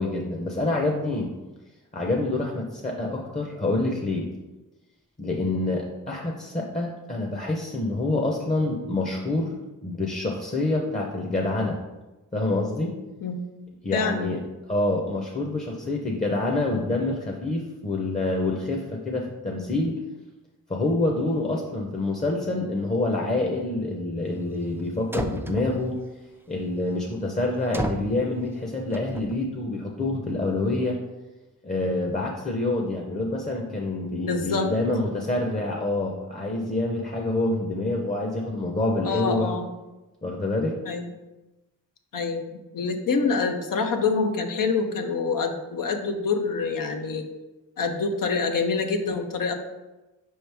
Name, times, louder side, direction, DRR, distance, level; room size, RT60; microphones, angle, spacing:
voice 1, 0.0-1.3 1.9-4.3 5.2-9.5 9.8-11.8 12.3-12.9 13.8-14.4 14.7-20.0 20.7-26.0 26.5-31.0 31.6-39.5 40.2-40.8, left 2 dB, 25° left, 0 dB, 0.7 m, -27 dB
voice 2, 13.9-14.3 34.1-34.7 39.0-39.7 40.9-41.1 42.1-47.3 47.8-49.5, left 4 dB, 75° left, 6 dB, 0.6 m, -26 dB
sound 1, 24.8-24.9 25.1-26.0 27.7-28.2 28.9-29.3, right 1 dB, 5° right, 0.3 m, -31 dB
5.0 x 3.1 x 3.4 m, 1.1 s
cardioid pair, 50°, 33 cm